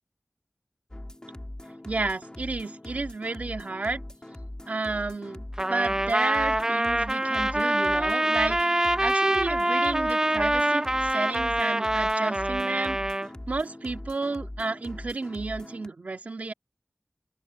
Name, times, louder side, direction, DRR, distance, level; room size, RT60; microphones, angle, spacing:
sound 1, 0.9-15.9, left 1 dB, 30° left, 2.6 m, -41 dB
voice 1, 1.8-4.0 4.7-13.2 13.5-16.5, right 3 dB, 85° right, 1.8 m, -32 dB
Trumpet, 5.6-13.3, right 1 dB, 25° right, 0.5 m, -25 dB
open air
wide cardioid pair, 50°, 3 cm